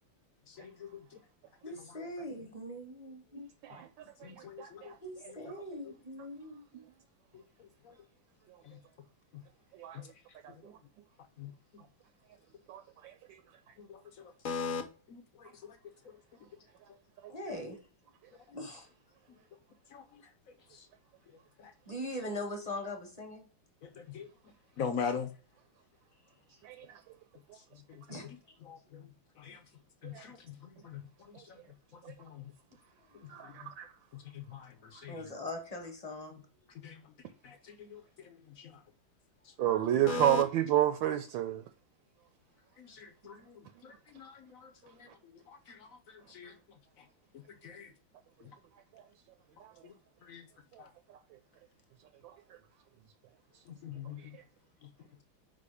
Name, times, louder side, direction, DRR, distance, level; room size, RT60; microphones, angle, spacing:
voice 1, 0.5-1.0 4.2-4.9 8.6-8.8 10.6-10.7 11.4-11.5 13.8-14.8 15.1-15.8 16.1-16.2 19.9-20.0 21.6-21.7 23.8-24.3 24.8-25.3 27.9-28.0 28.7-29.1 29.4-29.6 30.0-30.4 30.6-31.6 32.2-32.5 33.4-33.7 34.1-35.1 36.8-37.0 37.4-38.8 39.7-39.8 40.1-40.4 42.8-46.5 47.6-47.9 48.4-48.5 49.8-49.9 50.2-50.4 50.8-50.9 53.8-54.2, left 6 dB, 65° left, 0.8 m, -42 dB
voice 2, 1.6-3.5 5.0-6.8 17.3-17.8 18.5-18.9 19.3-19.4 21.8-23.5 28.1-28.3 33.1-33.2 35.1-36.4, left 1 dB, 25° left, 1.1 m, -41 dB
voice 3, 4.6-5.0 9.8-10.0 10.6-10.7 12.7-13.1 26.6-26.9 30.0-30.2 33.3-33.9 35.0-35.1 39.6-41.6, right 12 dB, 75° right, 1.3 m, -30 dB
5.4 x 4.2 x 4.9 m
omnidirectional pair, 2.2 m